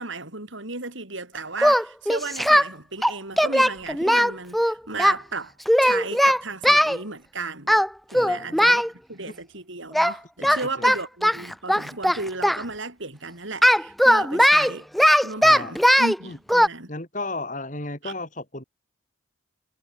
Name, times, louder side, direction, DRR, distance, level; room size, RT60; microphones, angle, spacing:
voice 1, 0.0-5.5 5.8-7.8 8.1-14.9 15.2-16.9 18.0-18.1, right 3 dB, 70° right, 4.9 m, -34 dB
Singing, 1.6-2.7 3.0-5.2 5.7-7.0 7.7-8.9 9.9-10.1 10.4-12.6 13.6-16.2 16.5-16.7, equal, ahead, 0.9 m, -18 dB
voice 2, 8.1-8.6 9.3-9.4 10.4-10.9 15.4-15.8 16.2-16.4 16.9-18.6, left 2 dB, 40° left, 4.9 m, -34 dB
head